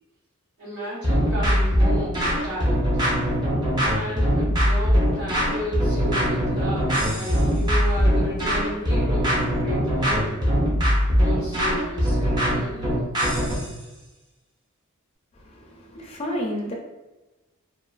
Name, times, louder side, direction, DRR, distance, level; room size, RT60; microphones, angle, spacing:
voice 1, 0.6-3.0 3.8-10.4 11.2-13.1, equal, 70° right, -12 dB, 1.0 m, -33 dB
sound 1, 1.0-13.7, equal, 20° right, 0.5 m, -21 dB
voice 2, 15.3-16.7, equal, 25° left, -1 dB, 0.4 m, -31 dB
2.4 x 2.3 x 2.3 m, 1.1 s
head